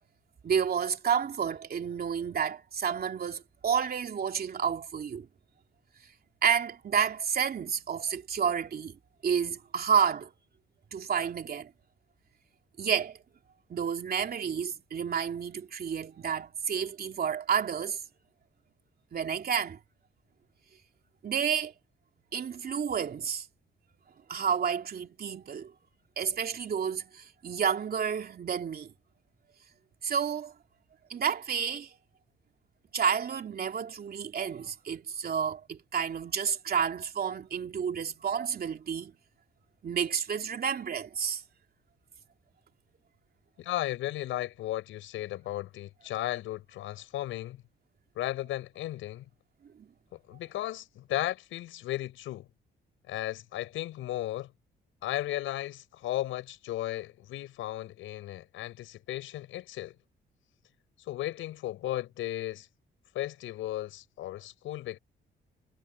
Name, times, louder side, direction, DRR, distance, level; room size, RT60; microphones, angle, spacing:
voice 1, 0.4-5.3 6.4-10.3 10.9-11.7 12.8-13.2 13.7-18.0 19.1-19.8 21.2-21.7 22.3-23.5 24.3-25.7 26.2-28.9 30.0-30.5 31.1-31.9 32.9-39.1 39.8-41.4 49.8-49.9, right 7 dB, 50° right, 3.0 m, -30 dB
voice 2, 43.6-47.6 48.2-49.2 50.3-52.5 53.1-54.5 55.0-59.9 61.1-62.7 63.1-65.0, left 14 dB, 90° left, 6.2 m, -35 dB
cardioid pair, 90°, 20 cm